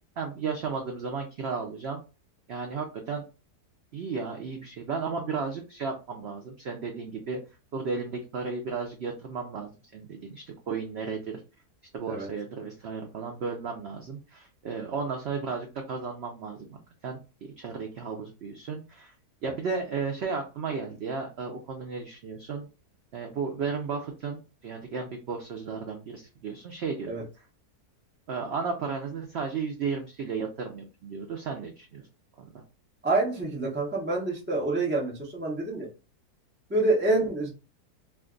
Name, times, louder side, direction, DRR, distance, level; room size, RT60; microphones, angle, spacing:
voice 1, 0.2-2.0 2.5-3.2 3.9-7.4 7.7-11.4 11.9-19.1 19.4-22.7 23.1-27.1 28.3-32.1 32.4-32.5, right 5 dB, 90° right, 3 dB, 0.5 m, -34 dB
voice 2, 33.0-35.9 36.7-37.5, right 2 dB, 15° right, -3 dB, 0.4 m, -27 dB
2.5 x 2.3 x 3.7 m, 0.32 s
omnidirectional pair, 1.7 m